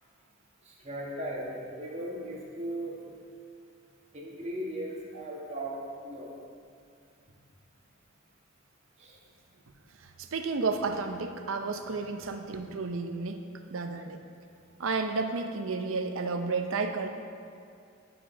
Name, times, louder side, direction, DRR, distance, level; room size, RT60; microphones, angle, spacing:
voice 1, 0.6-3.0 4.1-5.7 6.0-6.3 9.0-9.2, right 1 dB, 35° right, -4 dB, 1.4 m, -37 dB
voice 2, 10.2-13.4 13.7-14.2 14.8-17.1, right 4 dB, 70° right, 6 dB, 0.6 m, -31 dB
9.1 x 5.0 x 4.9 m, 2.4 s
head